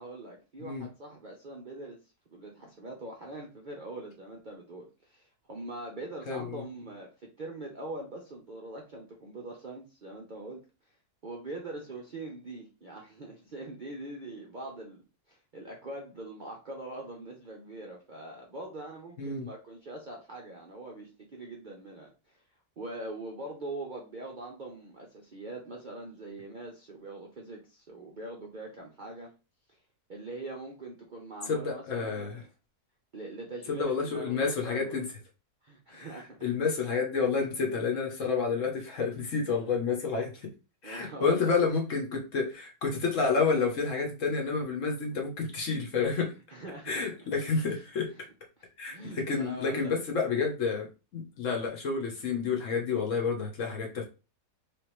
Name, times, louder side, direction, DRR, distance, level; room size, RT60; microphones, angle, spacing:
voice 1, 0.0-2.0 2.3-7.1 7.4-11.0 11.2-22.4 22.8-29.3 29.7-29.8 30.1-32.5 33.1-35.0 35.6-36.5 40.1-40.2 40.8-41.6 46.5-47.0 47.7-47.8 48.6-50.0, right 2 dB, 50° right, -1 dB, 0.6 m, -43 dB
voice 2, 6.3-6.6 19.2-19.5 31.5-32.3 33.7-35.0 35.9-36.1 36.4-40.5 40.8-46.3 46.9-48.1 48.8-54.0, left 5 dB, 55° left, 1 dB, 1.2 m, -29 dB
3.4 x 3.4 x 3.0 m, 0.31 s
omnidirectional pair, 1.7 m